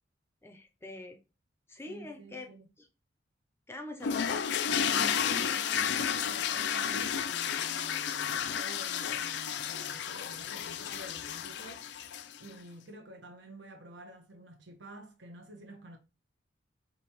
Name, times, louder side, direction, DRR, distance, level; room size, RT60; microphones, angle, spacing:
voice 1, 0.4-1.2 1.7-2.5 2.8-2.9 3.7-4.4, left 2 dB, 15° left, 0.6 m, -44 dB
voice 2, 1.9-2.7 4.8-11.8 12.4-16.0, right 1 dB, 70° right, 1.1 m, -49 dB
sound 1, 4.0-12.5, left 8 dB, 60° left, 0.3 m, -32 dB
5.1 x 2.8 x 3.0 m
head